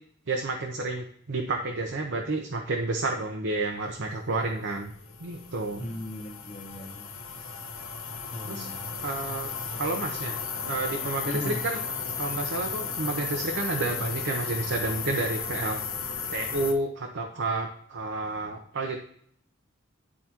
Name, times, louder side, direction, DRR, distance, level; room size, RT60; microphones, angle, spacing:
voice 1, 0.3-4.9 5.2-5.9 8.5-8.7 9.0-10.4 10.7-11.8 12.2-15.8 16.3-19.0, right 2 dB, 60° right, 2 dB, 0.7 m, -30 dB
sound 1, 4.5-16.7, left 6 dB, 75° left, 1.1 m, -35 dB
voice 2, 5.8-7.1 8.3-8.9 11.2-11.6, left 1 dB, 35° left, 2 dB, 1.0 m, -37 dB
11.0 x 4.2 x 2.9 m, 0.64 s
head